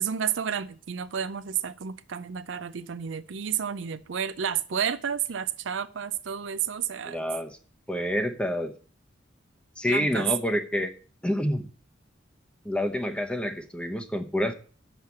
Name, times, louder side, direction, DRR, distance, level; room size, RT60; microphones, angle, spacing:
voice 1, 0.0-7.2 9.9-10.3, right 8 dB, 75° right, 13 dB, 0.5 m, -31 dB
voice 2, 7.1-7.6 7.9-8.7 9.8-10.9 11.2-11.7 12.6-14.5, equal, 5° left, 7 dB, 0.8 m, -28 dB
6.5 x 6.2 x 7.0 m, 0.40 s
head